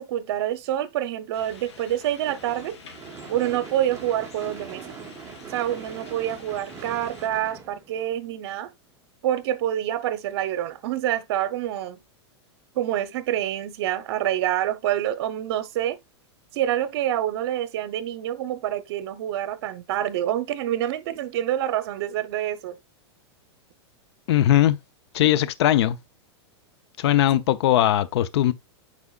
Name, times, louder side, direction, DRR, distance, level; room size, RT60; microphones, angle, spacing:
voice 1, 0.0-2.8 3.3-4.8 5.5-8.7 9.2-12.0 12.7-16.0 16.5-22.8 27.3-27.4, right 12 dB, 60° right, 0.9 m, -27 dB
sound 1, 1.3-7.3, left 4 dB, 90° left, 3.9 m, -48 dB
Gunshot gunfire / Fireworks, 2.3-8.5, right 6 dB, 20° right, 1.3 m, -42 dB
voice 2, 24.3-24.8 25.1-26.0 27.0-28.5, left 12 dB, 70° left, 0.6 m, -19 dB
8.3 x 4.9 x 2.4 m
supercardioid pair, 140°, 14 cm